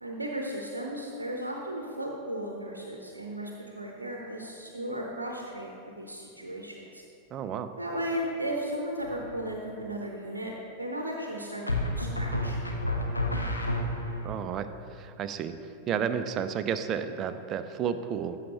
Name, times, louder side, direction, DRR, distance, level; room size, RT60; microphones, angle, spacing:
voice 1, 0.0-7.0 7.8-12.6, right 1 dB, 80° right, 0 dB, 0.7 m, -35 dB
voice 2, 7.3-7.7 14.2-15.5 15.9-18.4, right 8 dB, 30° right, 10 dB, 0.4 m, -32 dB
sound 1, 9.0-9.5 11.7-14.3, left 1 dB, 85° left, 0.8 m, -30 dB
13.5 x 5.7 x 2.9 m, 2.6 s
figure-of-eight pair, 90°, 0 cm